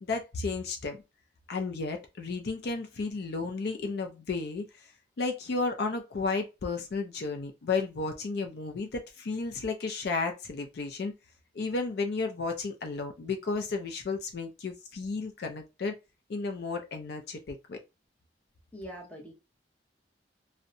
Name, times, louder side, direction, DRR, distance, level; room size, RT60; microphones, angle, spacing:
voice 1, 0.0-1.0 1.5-4.9 5.2-11.1 11.5-16.0 16.3-17.8, left 4 dB, 60° left, 0.4 m, -33 dB
voice 2, 18.7-19.3, equal, 10° left, 0.8 m, -43 dB
2.6 x 2.1 x 2.5 m
head